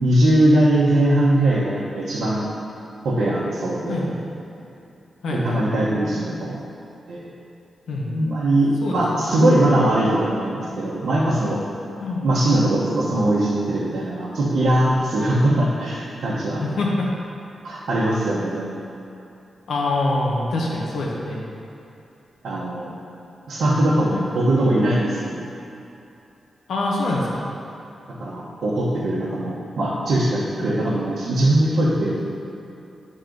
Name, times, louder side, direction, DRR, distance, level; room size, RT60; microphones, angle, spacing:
voice 1, 0.0-2.5 3.0-4.1 5.3-6.6 7.1-7.2 8.0-11.6 12.2-16.6 17.6-18.7 22.4-22.9 23.5-25.3 28.2-32.2, right 1 dB, 80° right, -9 dB, 1.1 m, -20 dB
voice 2, 5.2-5.7 7.9-8.1 8.8-9.0 12.0-12.2 16.6-17.1 19.7-21.4 24.1-24.2 26.7-27.4 30.6-30.8, left 2 dB, 85° left, -3 dB, 1.1 m, -24 dB
10.5 x 4.1 x 3.9 m, 2.7 s
wide cardioid pair, 175°, 0 cm